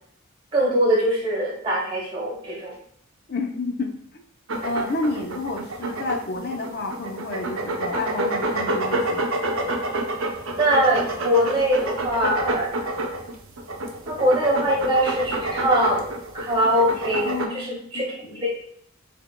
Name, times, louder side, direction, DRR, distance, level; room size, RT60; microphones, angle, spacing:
voice 1, 0.5-2.8 10.6-12.7 14.1-18.5, equal, 25° right, -3 dB, 1.3 m, -22 dB
voice 2, 3.3-4.2 4.6-9.3 17.2-18.5, left 2 dB, 50° left, 3 dB, 0.7 m, -30 dB
sound 1, 4.5-17.5, right 1 dB, 75° right, 0.7 m, -28 dB
5.8 x 3.7 x 2.2 m, 0.64 s
head